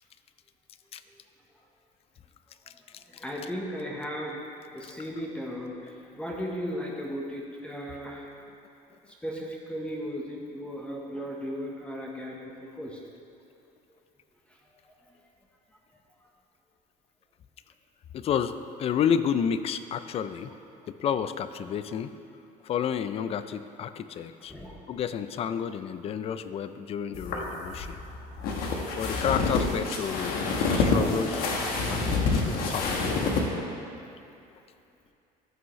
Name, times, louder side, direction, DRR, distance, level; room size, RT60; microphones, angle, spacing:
voice 1, 3.1-8.3 9.1-12.3 12.6-13.0 24.5-24.8, equal, 5° left, -2 dB, 1.0 m, -36 dB
voice 2, 18.1-20.5 20.9-22.1 22.6-24.5 24.9-28.0 29.0-31.5 31.9-33.3, left 8 dB, 40° left, 12 dB, 0.4 m, -30 dB
sound 1, 27.1-33.5, left 3 dB, 70° left, 1.3 m, -27 dB
14.0 x 6.2 x 3.1 m, 2.6 s
cardioid pair, 125°, 16 cm